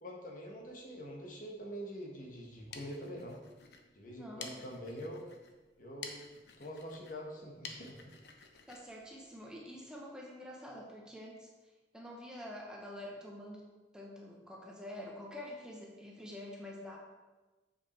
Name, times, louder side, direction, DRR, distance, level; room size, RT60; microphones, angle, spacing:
voice 1, 0.0-3.4 3.9-5.2 5.8-8.1, equal, 50° left, 0 dB, 1.4 m, -45 dB
sound 1, 2.4-9.9, left 5 dB, 65° left, 0.8 m, -52 dB
voice 2, 4.0-4.5 8.7-11.5 11.9-17.0, left 1 dB, 5° right, -2 dB, 1.1 m, -47 dB
7.4 x 6.1 x 4.4 m, 1.2 s
head